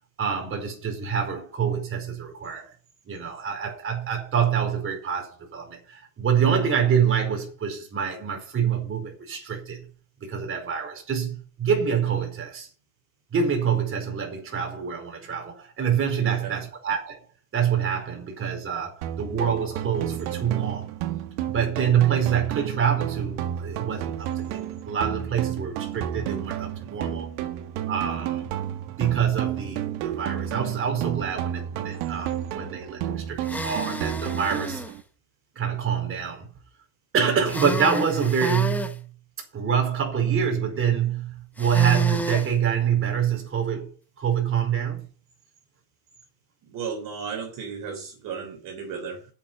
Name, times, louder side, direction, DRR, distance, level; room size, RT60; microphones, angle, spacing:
voice 1, 0.2-2.7 3.1-9.9 10.2-12.7 13.3-17.2 17.5-20.9 21.5-27.3 27.9-28.5 29.0-34.8 35.5-36.5 37.1-39.1 39.5-43.9 44.2-45.1, right 7 dB, 30° right, 4.7 m, -26 dB
voice 2, 16.2-16.6 46.6-49.3, right 6 dB, 45° right, 3.8 m, -35 dB
sound 1, 19.0-35.0, right 11 dB, 80° right, 2.0 m, -31 dB
sound 2, 33.4-34.9 37.4-38.9 41.6-42.5, equal, 5° left, 1.1 m, -31 dB
8.7 x 7.6 x 8.7 m
cardioid pair, 145°, 43 cm